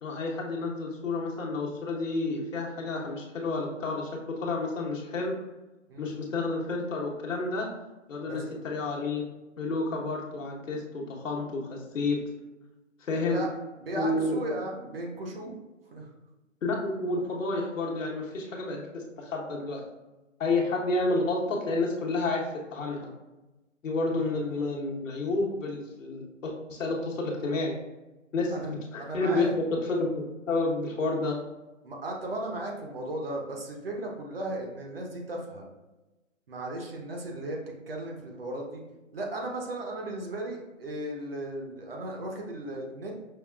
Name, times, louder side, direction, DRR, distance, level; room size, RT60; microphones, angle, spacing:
voice 1, 0.0-4.1 4.4-5.3 6.0-7.7 8.1-9.2 9.6-12.2 13.0-13.4 13.9-14.4 16.6-19.8 20.4-22.4 22.7-23.1 23.8-27.7 28.3-31.4, left 2 dB, 75° left, -1 dB, 1.0 m, -30 dB
voice 2, 8.2-8.5 13.2-15.6 15.9-16.1 24.1-24.2 28.5-28.7 29.0-29.5 31.8-35.7 36.5-37.6 37.9-38.8 39.1-43.1, right 1 dB, 50° right, 0 dB, 0.8 m, -36 dB
5.5 x 2.3 x 2.3 m, 1.1 s
hypercardioid pair, 160°, 39 cm